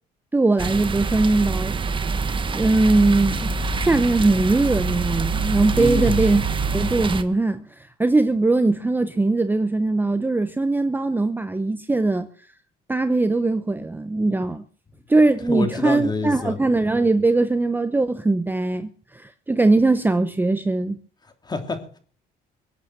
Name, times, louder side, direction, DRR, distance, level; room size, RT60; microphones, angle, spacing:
voice 1, 0.3-2.0 2.5-3.5 3.8-6.4 6.7-12.3 12.9-14.6 15.1-21.0, right 2 dB, 10° right, 0.8 m, -20 dB
sound 1, 0.6-7.2, right 4 dB, 30° right, 1.4 m, -25 dB
voice 2, 5.7-6.3 15.5-16.6 21.2-22.0, left 3 dB, 25° left, 3.1 m, -27 dB
22.5 x 8.6 x 6.0 m
cardioid pair, 110°, 17 cm